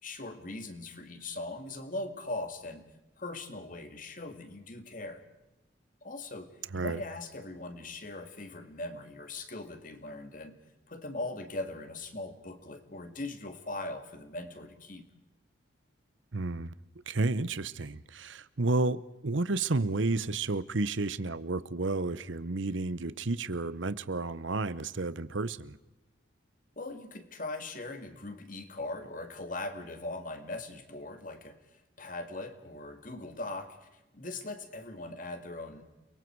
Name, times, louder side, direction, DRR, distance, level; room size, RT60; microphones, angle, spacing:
voice 1, 0.0-2.8 3.2-5.2 6.0-10.6 10.9-15.1 26.8-33.9 34.1-35.8, left 2 dB, 45° left, 2.3 m, -40 dB
voice 2, 16.3-16.7 17.1-25.8, right 3 dB, 70° right, 0.9 m, -31 dB
30.0 x 23.5 x 4.7 m
head